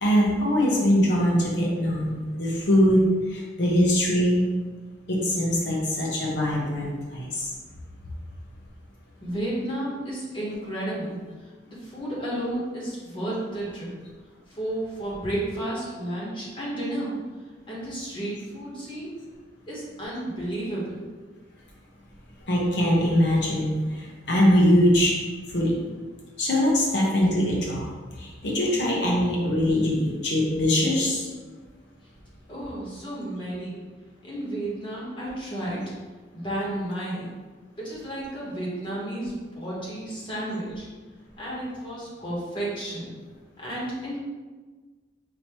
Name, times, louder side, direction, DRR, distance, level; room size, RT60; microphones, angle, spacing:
voice 1, 0.0-4.4 5.1-7.5 22.4-25.1 25.5-25.8 26.4-27.9 28.2-31.3, equal, 70° left, -4 dB, 1.0 m, -22 dB
voice 2, 9.2-11.2 11.7-13.9 14.5-17.1 17.7-19.1 19.7-21.0 32.5-33.8 34.2-35.9 36.3-37.3 37.7-40.9 41.4-43.1 43.6-44.2, right 1 dB, 30° left, -6 dB, 1.2 m, -32 dB
5.1 x 2.9 x 3.0 m, 1.4 s
head